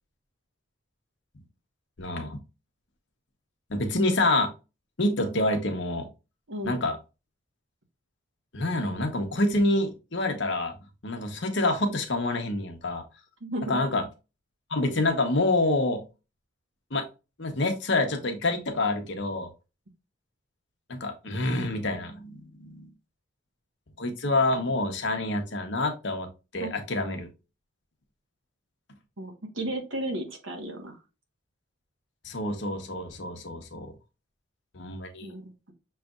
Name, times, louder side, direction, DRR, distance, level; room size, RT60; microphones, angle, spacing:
voice 1, 2.0-2.4 3.7-4.5 5.0-6.1 6.6-7.0 8.5-10.7 11.0-13.0 13.7-14.0 14.7-16.0 16.9-17.1 17.4-19.5 20.9-22.9 24.0-26.3 26.5-27.3 32.2-33.9 34.7-35.3, left 2 dB, 60° left, 5 dB, 1.0 m, -27 dB
voice 2, 6.5-6.8 13.4-14.0 26.6-26.7 29.2-31.0 35.2-35.7, right 1 dB, 70° right, 3 dB, 1.3 m, -34 dB
6.2 x 3.3 x 2.4 m, 0.29 s
head